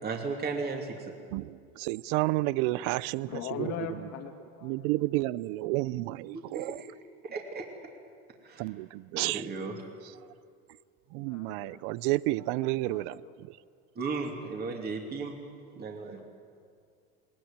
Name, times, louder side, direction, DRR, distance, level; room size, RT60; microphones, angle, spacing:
voice 1, 0.0-1.1 6.3-6.9 7.2-7.7 8.4-8.7 9.2-9.7 13.9-15.3 15.8-16.2, right 4 dB, 30° right, 2.7 m, -35 dB
voice 2, 1.3-4.0 4.6-6.8 8.6-9.5 11.1-13.2 13.5-13.6, right 19 dB, 75° right, 0.6 m, -31 dB
voice 3, 3.3-4.9 11.2-11.8 12.5-13.4, left 8 dB, 60° left, 2.5 m, -40 dB
21.0 x 19.5 x 8.9 m
cardioid pair, 130°, 31 cm